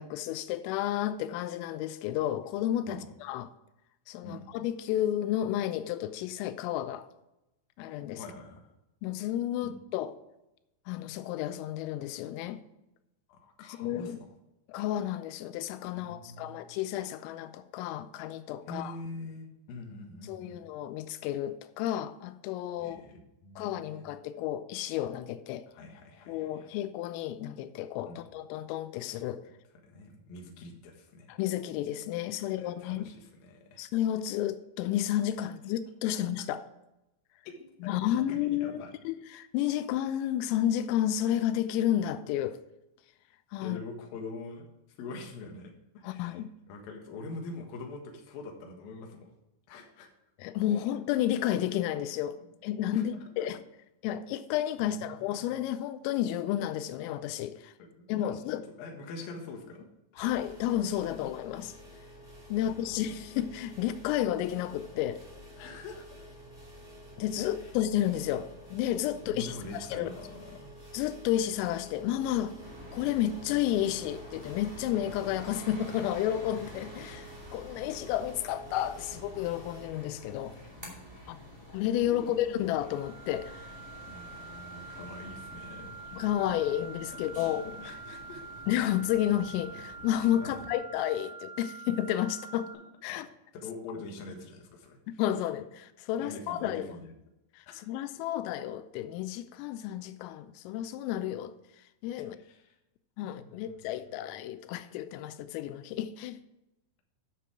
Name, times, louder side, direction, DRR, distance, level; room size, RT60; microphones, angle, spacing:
voice 1, 0.0-3.5 4.1-7.1 7.8-8.2 9.0-10.1 10.9-12.6 13.7-14.2 14.7-19.0 20.2-23.0 23.6-25.6 26.3-29.4 31.3-33.1 33.8-36.6 37.8-42.6 43.5-43.8 46.0-46.5 50.4-52.4 52.6-53.6 54.0-57.7 58.1-58.6 60.2-61.7 62.5-65.2 67.2-70.1 70.9-72.6 72.9-80.6 81.3-81.4 81.7-83.7 86.1-87.7 88.7-92.7 93.0-93.3 95.1-96.9 97.6-101.5 102.0-102.4 103.2-106.4, left 12 dB, 90° left, 3.2 m, -31 dB
voice 2, 8.2-8.7 13.3-14.1 15.9-16.6 18.7-20.6 22.8-24.0 25.7-26.7 28.1-28.2 29.8-31.3 32.4-33.8 37.5-37.6 38.0-38.9 43.6-44.6 45.0-46.4 46.7-49.3 49.7-50.1 52.9-53.0 53.4-53.5 54.9-55.2 57.8-59.9 60.1-60.3 62.6-62.9 65.6-66.1 67.4-67.5 69.1-70.7 82.0-82.6 84.1-85.9 87.3-88.6 90.4-90.6 93.1-93.2 93.5-95.2 96.2-97.1 97.7-97.8 102.4-102.8 103.2-103.8, left 3 dB, 65° left, 2.5 m, -44 dB
sound 1, 60.2-79.9, equal, 10° right, 3.7 m, -50 dB
sound 2, 72.6-90.7, equal, 65° right, 0.3 m, -49 dB
sound 3, 82.8-92.7, right 4 dB, 80° right, 4.0 m, -46 dB
10.0 x 6.8 x 4.8 m
omnidirectional pair, 5.9 m